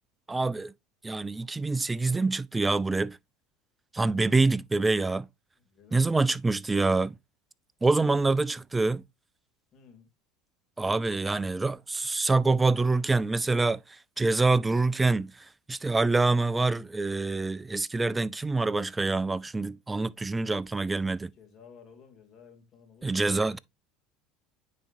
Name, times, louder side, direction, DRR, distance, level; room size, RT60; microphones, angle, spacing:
voice 1, 0.3-0.7 1.0-3.2 3.9-5.3 5.9-7.1 7.8-9.0 10.8-13.8 14.2-15.3 15.7-21.3 23.0-23.6, right 3 dB, 15° right, 0.3 m, -26 dB
voice 2, 5.6-6.1 8.6-8.7 9.7-10.1 21.4-23.6, left 6 dB, 40° left, 2.4 m, -54 dB
9.4 x 4.2 x 2.5 m
supercardioid pair, 100°, 0 cm